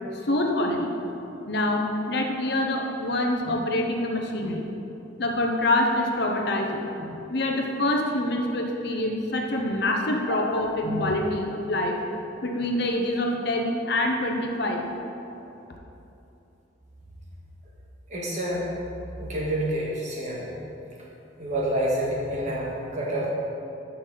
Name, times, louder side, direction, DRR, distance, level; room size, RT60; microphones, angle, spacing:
voice 1, 0.2-1.0 1.5-4.6 5.2-12.0 12.4-14.8, left 1 dB, 55° left, 2 dB, 0.8 m, -26 dB
voice 2, 18.1-18.7 19.2-20.6 21.4-23.3, right 1 dB, 35° right, -5 dB, 1.8 m, -28 dB
13.0 x 5.8 x 4.0 m, 2.9 s
head